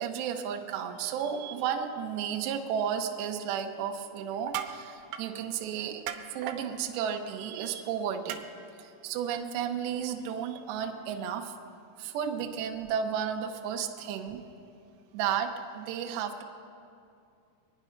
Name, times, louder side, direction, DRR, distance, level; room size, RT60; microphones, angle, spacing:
voice 1, 0.0-6.0 6.3-8.4 8.8-11.5 12.0-14.4 15.1-16.4, right 8 dB, 75° right, 4 dB, 2.8 m, -33 dB
sound 1, 4.3-4.8 5.1-5.3 6.1-6.6 8.3-8.4 9.3-9.4, right 10 dB, 90° right, 3.5 m, -36 dB
24.5 x 9.7 x 5.8 m, 2.6 s
omnidirectional pair, 5.9 m